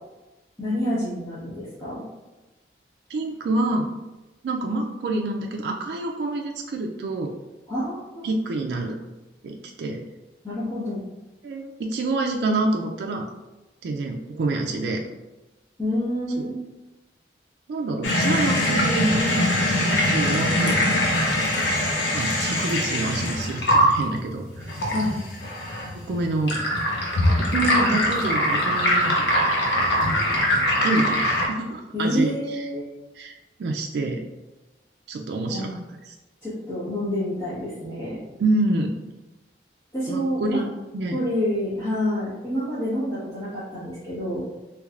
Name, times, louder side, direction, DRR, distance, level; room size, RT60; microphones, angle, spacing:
voice 1, 0.6-2.0 7.7-8.3 10.4-11.0 15.8-16.5 24.9-25.1 31.9-33.0 35.5-35.8 36.4-38.2 39.9-40.6 41.1-44.4, equal, 20° left, -13 dB, 1.1 m, -28 dB
voice 2, 3.1-3.9 4.4-7.4 8.2-9.0 9.4-10.0 11.4-13.3 13.8-15.0 16.4-16.5 17.7-20.8 22.1-24.7 25.9-26.6 27.4-29.3 30.7-32.7 33.1-34.2 35.1-36.2 38.4-39.0 40.1-40.7 40.9-41.2, right 2 dB, 70° right, 1 dB, 0.3 m, -27 dB
Under the tap, 18.0-31.5, left 1 dB, 85° left, 0.7 m, -22 dB
3.3 x 3.1 x 2.4 m, 1.1 s
head